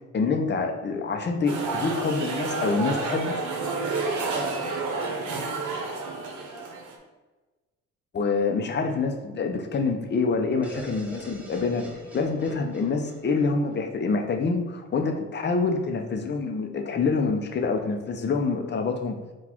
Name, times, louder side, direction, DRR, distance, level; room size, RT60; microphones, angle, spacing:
voice 1, 0.1-3.3 8.1-11.8 12.1-19.2, left 4 dB, 35° left, 4 dB, 0.6 m, -26 dB
sound 1, 1.5-7.0, right 3 dB, 80° right, 0.9 m, -30 dB
sound 2, 10.6-14.4, right 1 dB, 5° right, 0.8 m, -42 dB
4.0 x 2.4 x 4.4 m, 1.2 s
cardioid pair, 90°, 30 cm